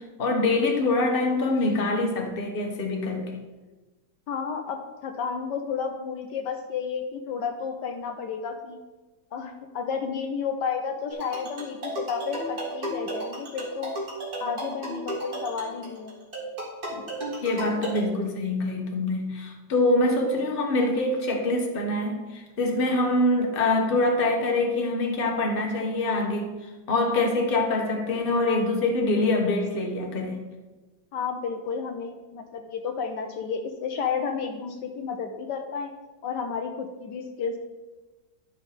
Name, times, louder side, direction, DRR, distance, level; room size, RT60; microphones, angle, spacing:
voice 1, 0.0-3.3 16.9-17.0 17.4-30.4, left 2 dB, 35° left, 1 dB, 1.3 m, -25 dB
voice 2, 4.3-8.8 9.3-13.9 14.4-16.1 31.1-35.9 36.2-37.6, left 6 dB, 75° left, 5 dB, 1.4 m, -32 dB
sound 1, 11.1-18.0, right 1 dB, 55° right, 2.8 m, -34 dB
11.5 x 5.3 x 5.0 m, 1.2 s
omnidirectional pair, 1.9 m